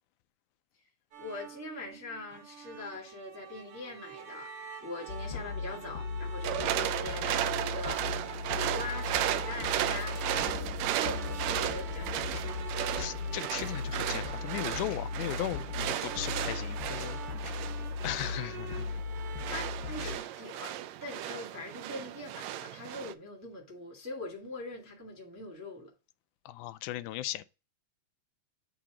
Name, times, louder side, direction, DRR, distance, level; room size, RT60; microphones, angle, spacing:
sound 1, 1.1-20.0, right 8 dB, 60° right, 1.7 m, -46 dB
voice 1, 1.2-4.5 4.8-12.4 19.4-20.7 21.0-25.9, left 2 dB, 10° right, 1.0 m, -42 dB
sound 2, 5.1-20.2, left 5 dB, 60° left, 1.7 m, -38 dB
sound 3, 6.4-23.1, right 13 dB, 80° right, 1.7 m, -35 dB
voice 2, 12.9-17.2 18.0-18.9 20.0-20.1 26.5-27.4, left 15 dB, 90° left, 2.0 m, -37 dB
8.5 x 2.9 x 4.8 m
omnidirectional pair, 3.5 m